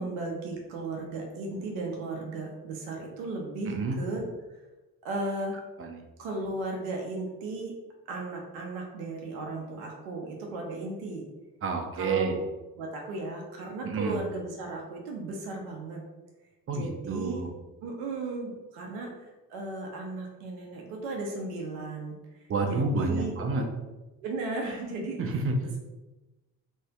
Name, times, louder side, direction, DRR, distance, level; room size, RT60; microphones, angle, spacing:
voice 1, 0.0-4.3 5.0-5.6 6.2-7.7 8.1-11.3 11.9-12.4 12.8-16.0 16.7-17.4 17.8-22.1 22.6-23.3 24.2-25.2 25.6-25.8, right 2 dB, 75° right, 1 dB, 0.6 m, -35 dB
voice 2, 3.7-4.0 5.8-6.0 11.6-12.4 13.8-14.2 16.7-17.5 22.5-23.6 25.2-25.6, right 3 dB, 30° right, 3 dB, 0.5 m, -29 dB
2.5 x 2.4 x 2.3 m, 1.1 s
hypercardioid pair, 50°, 45 cm